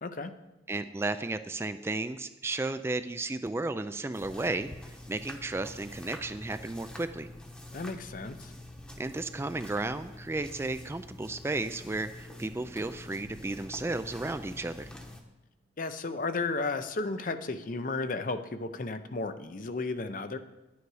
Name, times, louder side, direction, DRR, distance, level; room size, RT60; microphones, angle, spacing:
voice 1, 0.0-0.3 7.7-8.5 15.8-20.4, left 3 dB, 45° left, 10 dB, 0.6 m, -33 dB
voice 2, 0.7-7.3 9.0-14.9, right 2 dB, 15° right, 11 dB, 0.3 m, -34 dB
sound 1, 4.1-15.2, left 1 dB, 5° left, 0.9 m, -46 dB
11.0 x 9.3 x 4.8 m, 1.0 s
head